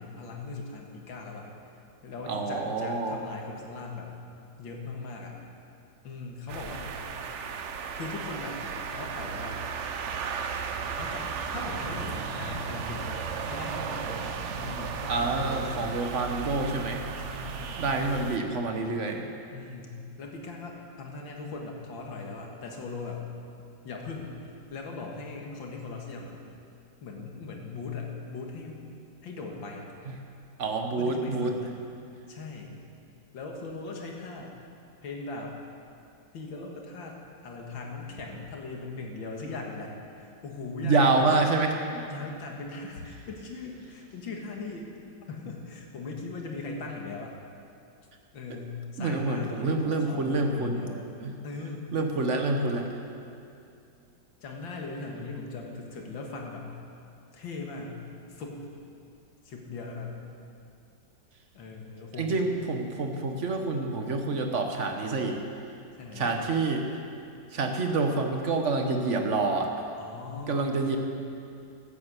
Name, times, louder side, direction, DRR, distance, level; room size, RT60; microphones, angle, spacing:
voice 1, 0.0-1.5 2.0-4.1 4.6-5.4 6.0-7.0 7.9-8.6 8.9-9.6 11.0-15.9 17.2-17.8 19.5-23.2 23.8-26.4 27.0-28.9 29.2-29.9 31.0-31.7 32.3-32.7 33.3-34.6 35.0-35.6 36.3-41.5 42.1-44.9 45.3-47.4 48.3-51.0 51.4-51.9 54.4-56.7 57.3-58.0 58.3-58.6 59.4-60.2 61.5-62.5 66.0-66.4 70.0-70.9, left 3 dB, 80° left, 0 dB, 2.4 m, -39 dB
voice 2, 2.3-3.2 15.1-17.0 17.8-19.3 30.6-31.5 40.8-42.1 49.0-50.8 51.2-51.3 51.9-52.9 62.2-65.4 66.1-66.9 67.5-69.7 70.5-71.0, right 3 dB, 45° right, 4 dB, 1.3 m, -27 dB
sound 1, 6.5-18.4, right 6 dB, 70° right, 0.7 m, -35 dB
13.0 x 8.9 x 8.2 m, 2.5 s
omnidirectional pair, 2.1 m